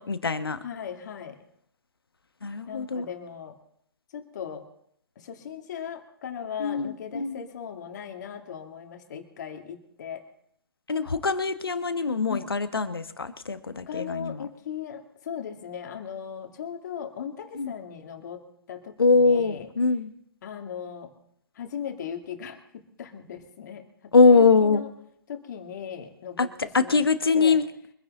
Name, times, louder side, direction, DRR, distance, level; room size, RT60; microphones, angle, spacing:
voice 1, 0.0-0.6 2.4-3.0 6.6-7.4 10.9-14.5 17.6-17.7 19.0-20.1 24.1-24.8 26.4-26.5 26.7-27.6, left 4 dB, 80° left, 10 dB, 1.4 m, -22 dB
voice 2, 0.6-1.4 2.7-3.5 4.1-4.6 5.2-10.2 12.3-12.5 13.9-18.4 18.7-19.7 20.4-21.1 21.6-22.6 23.0-23.8 24.2-24.9 25.3-27.0 27.3-27.6, left 8 dB, 50° left, 4 dB, 2.4 m, -38 dB
24.5 x 10.0 x 3.9 m, 0.72 s
figure-of-eight pair, 130°, 12 cm